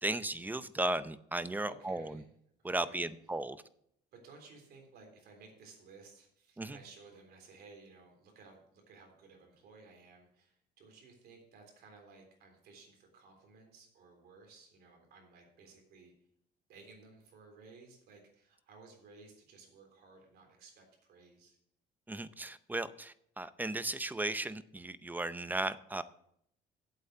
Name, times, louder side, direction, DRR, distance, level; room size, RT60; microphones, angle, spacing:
voice 1, 0.0-2.2 2.6-3.6 6.6-6.8 22.1-26.0, right 2 dB, 10° right, 0.6 m, -36 dB
voice 2, 1.6-2.3 2.6-3.1 4.1-16.1 16.7-21.6, right 4 dB, 70° right, 3.6 m, -57 dB
8.2 x 8.1 x 6.5 m
cardioid pair, 110°, 17 cm